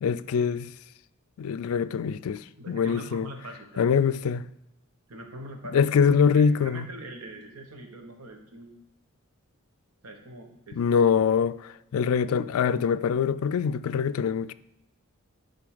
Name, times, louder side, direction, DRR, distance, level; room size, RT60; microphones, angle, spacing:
voice 1, 0.0-0.7 1.4-3.3 3.8-4.5 5.7-6.8 10.7-14.5, left 6 dB, 75° left, 0.3 m, -24 dB
voice 2, 2.6-3.9 5.1-8.7 10.0-10.8, right 1 dB, 85° right, 1.2 m, -43 dB
10.5 x 4.1 x 5.0 m
head